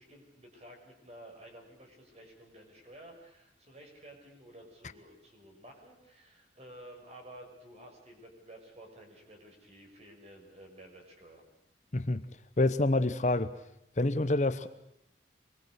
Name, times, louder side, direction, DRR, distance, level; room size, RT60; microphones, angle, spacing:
voice 1, 0.0-11.4, right 1 dB, 35° right, 2 dB, 6.3 m, -52 dB
voice 2, 11.9-12.2 12.6-13.5 14.0-14.7, left 2 dB, 40° left, 11 dB, 0.9 m, -27 dB
25.0 x 21.5 x 8.1 m, 0.80 s
head